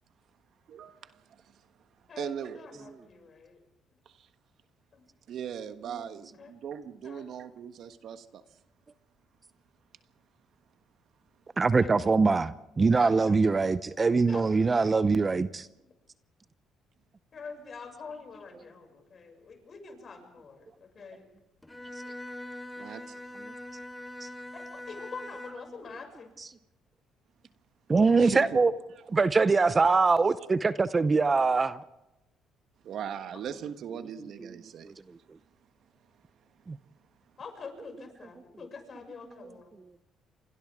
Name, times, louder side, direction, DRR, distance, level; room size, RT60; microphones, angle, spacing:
voice 1, 0.7-1.5 2.2-2.8 4.2-4.3 5.3-8.4 22.8-23.2 28.2-28.6 32.8-35.0, right 8 dB, 65° right, 10 dB, 1.3 m, -39 dB
voice 2, 2.1-3.6 4.9-5.0 6.4-6.6 7.0-7.3 11.8-12.1 12.9-13.3 14.1-14.5 17.3-21.3 24.5-26.3 37.4-39.8, left 5 dB, 45° left, 4 dB, 6.6 m, -45 dB
voice 3, 11.6-15.7 24.2-24.3 27.9-28.7 29.1-31.8 36.7-36.8, right 4 dB, 30° right, 14 dB, 0.7 m, -23 dB
Bowed string instrument, 21.6-25.8, left 1 dB, 10° left, 3.0 m, -42 dB
29.0 x 25.5 x 3.7 m, 0.94 s
supercardioid pair, 75°, 0 cm